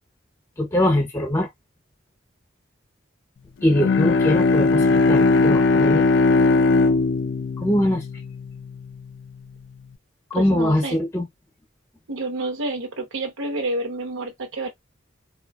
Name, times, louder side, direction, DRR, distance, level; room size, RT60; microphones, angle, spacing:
voice 1, 0.6-1.5 3.6-6.1 7.6-8.0 10.3-11.3, left 1 dB, 15° left, 0.6 m, -22 dB
Bowed string instrument, 3.6-9.0, left 3 dB, 60° left, 0.4 m, -19 dB
voice 2, 10.3-11.0 12.1-14.7, right 2 dB, 90° right, 0.9 m, -29 dB
4.0 x 2.3 x 2.3 m
head